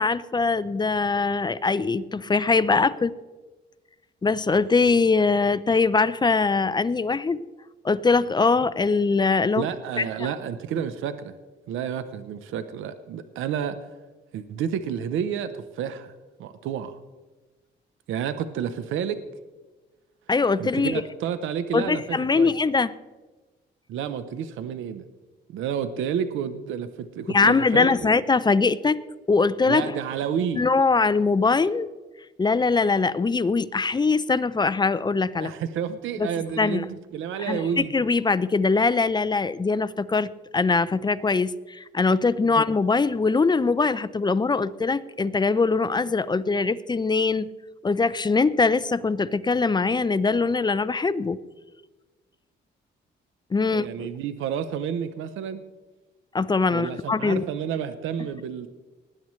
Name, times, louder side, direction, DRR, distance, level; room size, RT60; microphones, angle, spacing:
voice 1, 0.0-3.1 4.2-7.4 7.8-9.6 10.0-10.1 20.3-21.0 21.7-22.9 27.3-29.0 29.3-29.9 30.5-31.9 32.4-35.5 36.2-36.3 36.6-36.8 37.5-47.5 47.8-51.4 53.5-54.1 56.3-57.4, left 4 dB, 20° left, 15 dB, 0.5 m, -22 dB
voice 2, 9.6-11.4 11.7-13.8 14.3-16.1 16.4-17.0 18.1-19.2 20.6-22.6 23.9-25.1 25.5-28.1 29.7-30.6 35.3-37.9 42.4-42.5 53.7-55.6 56.7-58.7, right 8 dB, 80° right, 11 dB, 0.8 m, -30 dB
19.5 x 10.5 x 3.2 m, 1.2 s
cardioid pair, 90°, 20 cm